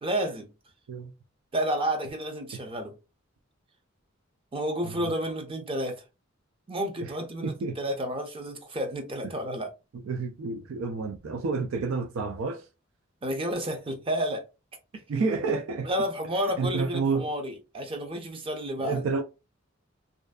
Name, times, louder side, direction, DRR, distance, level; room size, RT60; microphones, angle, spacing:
voice 1, 0.0-0.5 1.5-2.9 4.5-6.0 6.7-9.7 13.2-14.4 15.8-19.1, equal, 25° right, 0.5 m, -31 dB
voice 2, 7.4-7.8 10.1-12.6 15.1-15.9 16.6-17.3 18.8-19.2, right 4 dB, 80° right, 0.4 m, -29 dB
2.5 x 2.3 x 2.2 m
head